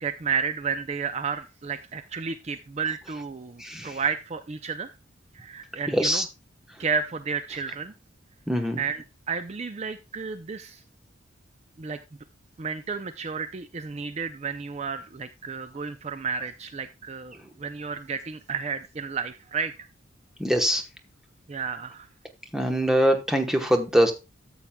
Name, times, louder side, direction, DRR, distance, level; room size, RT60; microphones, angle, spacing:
voice 1, 0.0-4.9 5.3-6.2 6.8-7.9 8.8-10.8 11.8-12.0 12.6-19.9 21.5-22.1, right 5 dB, 35° right, 10 dB, 0.4 m, -32 dB
voice 2, 3.6-4.0 5.9-6.2 8.5-8.8 20.4-20.8 22.5-24.1, equal, ahead, 5 dB, 1.0 m, -23 dB
13.5 x 7.2 x 2.2 m, 0.28 s
head